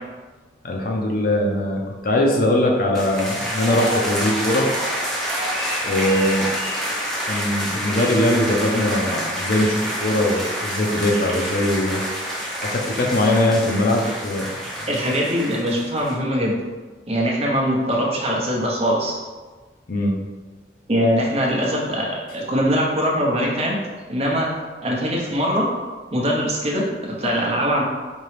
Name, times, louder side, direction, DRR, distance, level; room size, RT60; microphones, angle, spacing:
voice 1, 0.6-4.7 5.8-6.5 7.2-12.0 12.7-14.5 19.9-20.1, left 1 dB, 50° left, 0 dB, 0.6 m, -21 dB
sound 1, 2.9-16.2, equal, ahead, 0.6 m, -27 dB
voice 2, 14.9-16.6 17.1-19.2 20.9-23.8 24.1-24.5 24.8-25.7 26.1-27.8, equal, 35° right, -2 dB, 0.7 m, -22 dB
4.5 x 2.9 x 3.2 m, 1.3 s
head